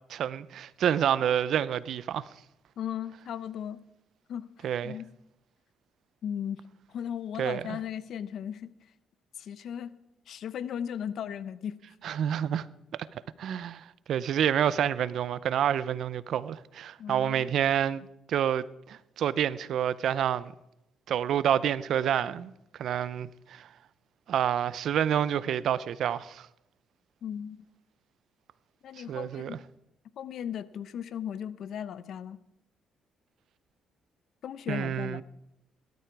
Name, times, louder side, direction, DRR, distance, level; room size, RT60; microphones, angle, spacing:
voice 1, 0.1-2.3 4.6-5.0 7.4-7.8 12.0-12.7 13.4-20.5 21.1-22.5 22.8-23.7 24.3-26.5 29.0-29.6 34.7-35.2, right 9 dB, 70° right, 0.6 m, -28 dB
voice 2, 2.8-3.8 4.3-5.0 6.2-6.6 6.9-8.7 9.4-9.9 10.3-11.8 17.0-17.5 27.2-27.6 28.8-29.6 30.2-32.4 34.4-35.2, left 9 dB, 70° left, 0.8 m, -36 dB
18.0 x 12.5 x 4.7 m
cardioid pair, 85°, 0 cm